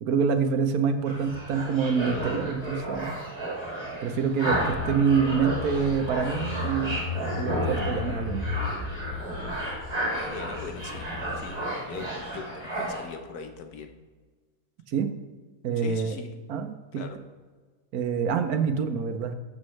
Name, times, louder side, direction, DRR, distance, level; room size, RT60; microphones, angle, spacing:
voice 1, 0.0-3.2 4.0-7.0 7.4-8.5 14.9-15.1 15.6-16.2 16.5-17.0 17.9-19.3, right 6 dB, 70° right, 8 dB, 1.2 m, -26 dB
sound 1, 1.1-13.0, right 1 dB, 15° right, 2.3 m, -33 dB
Car / Engine, 4.5-11.5, left 4 dB, 50° left, 0.5 m, -35 dB
voice 2, 10.3-13.9 15.8-16.3 16.9-17.2, left 5 dB, 75° left, 7 dB, 1.4 m, -41 dB
12.5 x 7.4 x 3.2 m, 1.4 s
omnidirectional pair, 1.7 m